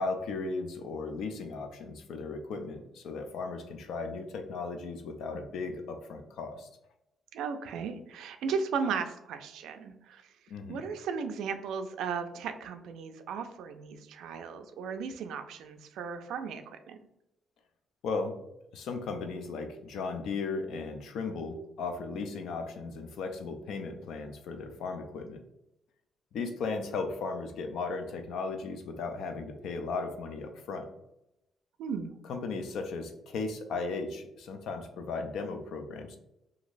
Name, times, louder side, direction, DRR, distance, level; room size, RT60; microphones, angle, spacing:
voice 1, 0.0-6.7 10.5-10.8 18.0-18.4 18.7-25.4 26.3-30.9 32.3-36.2, left 4 dB, 75° left, 6 dB, 0.4 m, -36 dB
voice 2, 7.3-10.2 10.7-17.0 31.8-32.1, right 6 dB, 85° right, 8 dB, 0.3 m, -36 dB
2.9 x 2.6 x 2.5 m, 0.87 s
cardioid pair, 90°, 0 cm